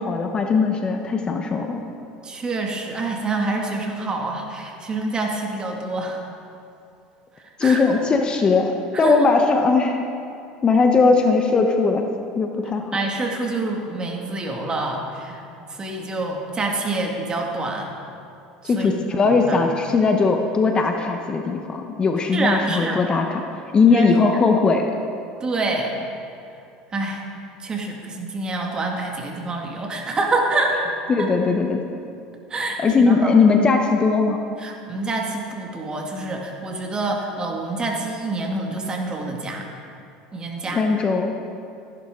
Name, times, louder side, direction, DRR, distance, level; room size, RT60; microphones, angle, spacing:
voice 1, 0.0-1.8 7.6-10.0 10.6-12.0 12.4-13.0 18.6-24.9 31.1-31.8 32.8-34.5 40.7-41.3, left 4 dB, 30° left, 4 dB, 1.0 m, -19 dB
voice 2, 2.2-6.2 7.6-7.8 8.9-9.3 12.9-15.4 15.7-17.9 18.6-19.6 22.3-23.0 23.8-24.1 25.4-26.0 26.9-27.2 27.6-30.8 31.2-31.3 32.5-33.3 34.6-39.7 40.3-40.8, right 2 dB, 30° right, 1 dB, 2.2 m, -27 dB
15.0 x 11.0 x 3.9 m, 2.5 s
hypercardioid pair, 90°, 3 cm